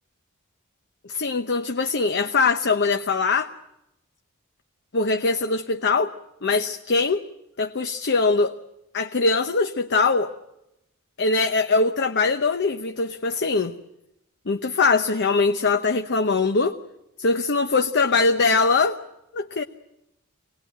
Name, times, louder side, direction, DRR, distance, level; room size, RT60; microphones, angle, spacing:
voice 1, 1.1-3.5 4.9-6.1 6.4-7.2 7.6-8.6 8.9-10.3 11.2-13.7 14.5-16.8 17.2-19.0 19.3-19.6, left 4 dB, 50° left, 7 dB, 0.9 m, -22 dB
24.5 x 19.5 x 9.1 m, 0.88 s
head